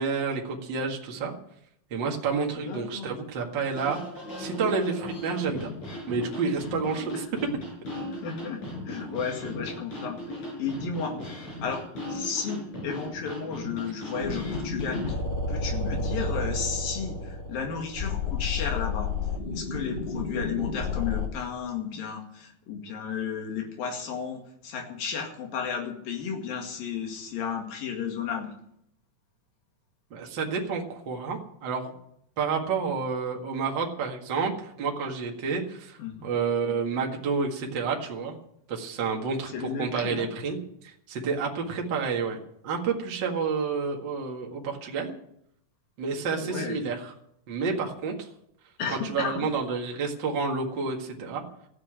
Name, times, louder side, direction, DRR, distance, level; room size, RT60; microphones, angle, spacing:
voice 1, 0.0-1.3 1.9-5.7 6.1-7.2 30.1-31.9 32.4-38.4 38.7-40.6 40.8-42.4 42.6-45.1 46.0-47.1 47.5-48.3 48.9-51.4, right 5 dB, 40° right, 1 dB, 2.0 m, -29 dB
voice 2, 2.6-3.1 6.9-7.0 8.1-8.6 8.9-11.8 12.1-15.2 15.5-19.1 19.5-28.5 36.0-36.3 39.5-40.3 46.3-46.8 48.8-49.5, left 6 dB, 80° left, 2 dB, 3.9 m, -33 dB
sound 1, 3.8-15.1, left 1 dB, 50° left, 5.6 m, -38 dB
sound 2, 14.2-21.3, left 3 dB, 30° left, 0.9 m, -31 dB
14.5 x 8.6 x 8.8 m, 0.73 s
omnidirectional pair, 4.1 m